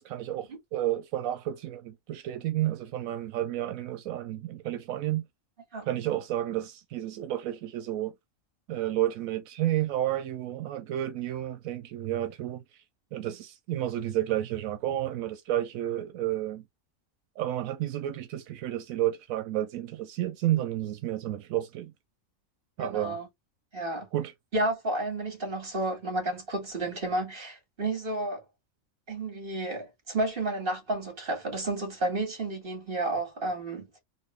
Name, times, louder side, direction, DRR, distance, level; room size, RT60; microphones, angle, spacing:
voice 1, 0.0-5.2 5.9-8.1 8.7-12.8 13.1-16.6 17.4-21.9 22.8-23.2 24.1-24.3, right 13 dB, 85° right, 1.0 m, -31 dB
voice 2, 22.8-23.3 23.7-24.1 24.5-28.4 29.1-33.9, right 2 dB, 40° right, 2.1 m, -31 dB
4.1 x 2.2 x 3.2 m
omnidirectional pair, 1.4 m